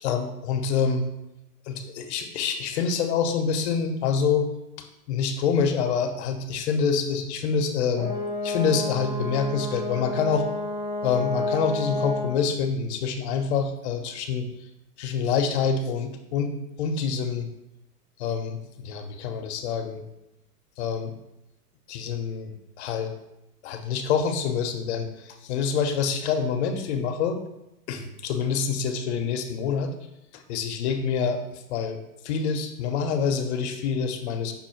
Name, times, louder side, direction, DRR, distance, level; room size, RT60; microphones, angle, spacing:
voice 1, 0.0-1.1 1.7-4.5 5.1-8.2 8.4-10.5 11.0-14.5 15.0-17.5 18.2-20.0 20.8-21.1 21.9-23.1 23.6-27.4 27.9-29.9 30.3-31.4 31.7-32.0 32.2-34.5, left 6 dB, 45° left, 6 dB, 0.6 m, -26 dB
Brass instrument, 7.9-12.4, left 2 dB, 10° right, 0.5 m, -30 dB
5.6 x 2.2 x 4.4 m, 0.90 s
hypercardioid pair, 125°, 48 cm